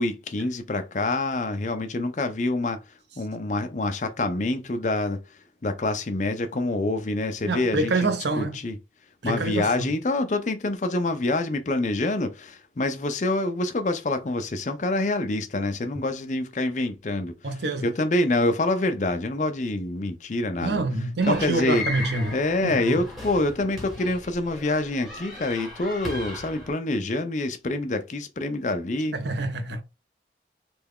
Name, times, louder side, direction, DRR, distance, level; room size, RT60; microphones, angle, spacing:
voice 1, 0.0-2.8 3.2-5.2 5.6-8.1 8.4-8.8 9.2-20.8 21.3-21.9 22.3-29.1, left 2 dB, 45° left, 0.5 m, -26 dB
voice 2, 7.5-8.6 9.2-9.9 17.4-17.9 20.6-22.4 22.6-23.0 29.1-29.8, right 3 dB, 80° right, 0.7 m, -26 dB
sound 1, 21.2-26.7, left 2 dB, ahead, 1.3 m, -37 dB
3.4 x 2.3 x 3.5 m
head